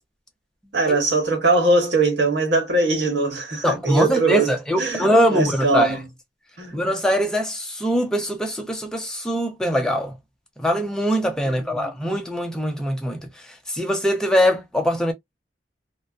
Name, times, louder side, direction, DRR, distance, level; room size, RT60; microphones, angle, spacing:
voice 1, 0.7-6.1 6.6-6.8 11.4-12.0, right 3 dB, 90° right, 1.3 m, -21 dB
voice 2, 3.6-5.9 6.7-10.1 10.6-13.2 13.7-15.1, equal, 5° left, 0.5 m, -22 dB
2.6 x 2.1 x 2.2 m
head